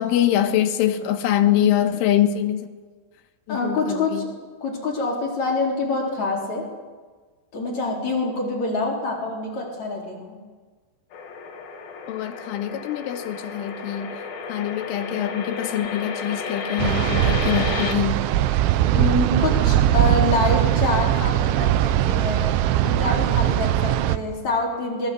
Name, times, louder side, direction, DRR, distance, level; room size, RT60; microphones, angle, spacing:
voice 1, 0.0-2.7 3.5-4.3 12.1-14.2 14.5-18.2, left 11 dB, 85° left, 3.9 m, -24 dB
voice 2, 3.5-4.3 4.6-6.7 7.5-10.4 18.8-22.5 22.8-25.1, left 2 dB, 35° left, 4.9 m, -26 dB
sound 1, 11.1-17.9, left 5 dB, 55° left, 3.7 m, -32 dB
sound 2, 16.8-24.2, right 12 dB, 75° right, 3.0 m, -20 dB
27.0 x 21.0 x 8.1 m
omnidirectional pair, 5.6 m